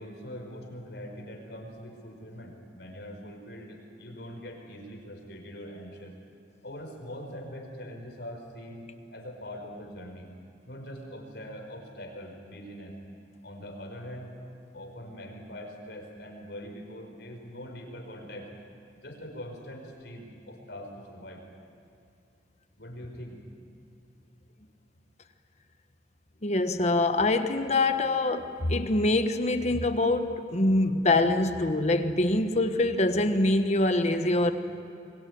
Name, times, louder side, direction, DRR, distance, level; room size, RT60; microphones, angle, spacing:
voice 1, 0.0-6.2 6.6-10.3 10.7-13.0 13.4-14.3 14.7-18.5 18.9-21.4 22.8-23.4, equal, 65° left, 2 dB, 5.0 m, -42 dB
voice 2, 26.4-34.5, left 2 dB, 40° left, 8 dB, 1.3 m, -24 dB
24.5 x 22.0 x 9.5 m, 2.6 s
head